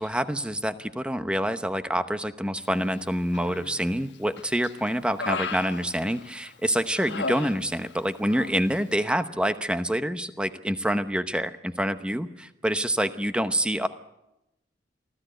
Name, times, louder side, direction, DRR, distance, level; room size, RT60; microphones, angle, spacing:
voice 1, 0.0-13.9, equal, 5° right, 10 dB, 0.9 m, -27 dB
Human voice, 3.3-3.9 4.4-6.5 6.9-8.0 8.3-8.6, left 3 dB, 75° left, 1.2 m, -35 dB
24.0 x 15.0 x 8.0 m, 0.91 s
head